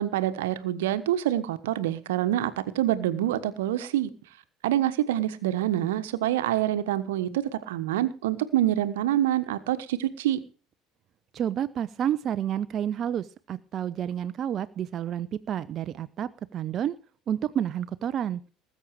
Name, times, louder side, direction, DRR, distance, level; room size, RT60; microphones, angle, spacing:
voice 1, 0.0-4.1 4.6-10.4, right 12 dB, 70° right, 1.3 m, -26 dB
voice 2, 11.3-16.9 17.3-18.4, right 9 dB, 45° right, 0.8 m, -30 dB
19.5 x 8.6 x 4.8 m
figure-of-eight pair, 65°, 0 cm